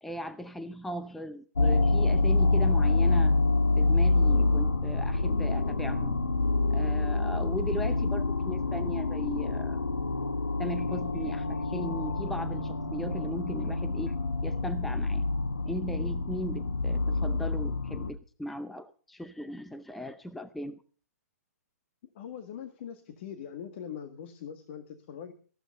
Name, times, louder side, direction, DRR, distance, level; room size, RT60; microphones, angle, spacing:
voice 1, 0.0-3.4 3.8-6.2 6.7-9.8 10.6-14.1 14.4-15.2 15.7-20.8, equal, ahead, 10 dB, 0.6 m, -38 dB
sound 1, 1.6-18.1, left 3 dB, 75° left, 1.6 m, -27 dB
voice 2, 22.2-25.3, left 8 dB, 40° left, 8 dB, 1.7 m, -42 dB
14.5 x 12.0 x 5.5 m, 0.42 s
figure-of-eight pair, 130°, 9 cm